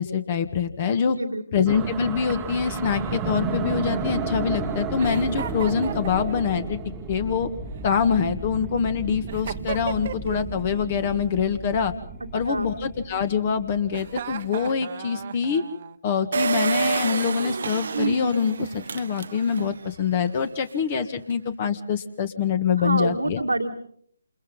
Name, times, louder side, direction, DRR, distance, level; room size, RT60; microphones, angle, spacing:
voice 1, 0.0-1.2 1.5-6.8 7.1-7.5 7.8-11.9 12.3-15.6 16.0-23.4, left 6 dB, 35° left, 12 dB, 1.7 m, -25 dB
voice 2, 1.1-1.7 12.4-12.7 22.8-23.7, right 2 dB, 85° right, 0 dB, 2.2 m, -27 dB
sound 1, 1.7-14.2, right 4 dB, 10° right, 1.4 m, -33 dB
Giggle, 2.5-4.3 5.0-6.6 7.6-8.6 9.3-10.5 10.7-11.3 12.5-13.2 13.9-16.0, right 8 dB, 40° right, 1.3 m, -38 dB
Engine, 16.3-19.8 20.3-20.4 20.5-20.6, right 5 dB, 55° right, 0.9 m, -28 dB
28.5 x 28.0 x 3.9 m, 0.62 s
figure-of-eight pair, 145°, 0 cm